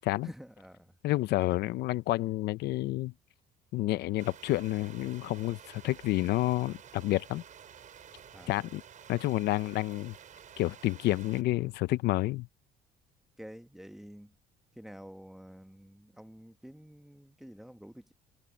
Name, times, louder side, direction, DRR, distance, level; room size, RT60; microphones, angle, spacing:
voice 1, 0.2-0.9 8.3-8.5 13.4-14.3 14.8-18.1, equal, ahead, 1.4 m, -49 dB
voice 2, 1.0-3.1 3.7-7.4 8.5-8.8 9.1-10.1 10.6-12.5, left 17 dB, 75° left, 0.6 m, -29 dB
sound 1, 4.2-11.4, right 8 dB, 50° right, 4.8 m, -51 dB
cardioid pair, 110°, 17 cm